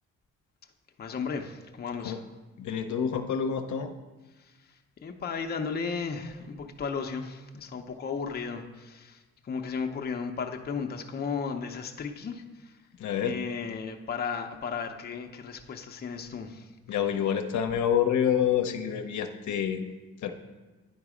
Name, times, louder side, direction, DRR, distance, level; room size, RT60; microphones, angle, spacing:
voice 1, 1.0-2.3 4.4-12.8 13.2-16.7, left 5 dB, 35° left, 4 dB, 0.6 m, -35 dB
voice 2, 2.6-3.9 13.0-13.4 16.9-19.8 20.2-20.3, left 8 dB, 70° left, 6 dB, 0.7 m, -27 dB
9.7 x 4.0 x 4.9 m, 1.2 s
cardioid pair, 90°, 30 cm